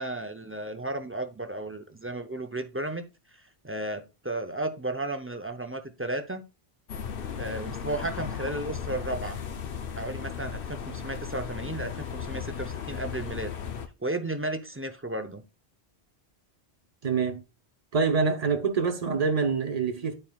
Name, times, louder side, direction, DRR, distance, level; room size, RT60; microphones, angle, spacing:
voice 1, 0.0-3.0 3.6-6.4 7.4-9.4 10.0-13.5 14.0-15.4, right 2 dB, 20° right, 0.3 m, -34 dB
sound 1, 6.9-13.9, left 7 dB, 60° left, 0.8 m, -36 dB
voice 2, 17.0-17.4 17.9-20.1, right 5 dB, 40° right, 0.9 m, -25 dB
11.0 x 4.4 x 2.3 m
omnidirectional pair, 1.1 m